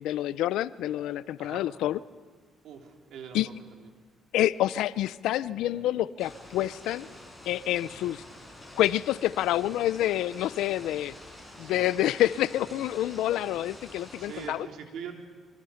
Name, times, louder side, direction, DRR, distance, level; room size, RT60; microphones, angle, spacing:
voice 1, 0.0-2.0 3.3-3.5 4.3-7.1 7.4-8.2 8.7-11.1 11.6-14.7, left 13 dB, 90° left, 18 dB, 0.6 m, -27 dB
voice 2, 2.6-3.5 5.9-6.0 7.8-8.2 11.6-11.9 14.2-15.1, right 7 dB, 80° right, 3 dB, 3.5 m, -43 dB
sound 1, 6.2-14.5, left 1 dB, ahead, 7.2 m, -48 dB
25.0 x 25.0 x 5.8 m, 1.5 s
cardioid pair, 90°, 0 cm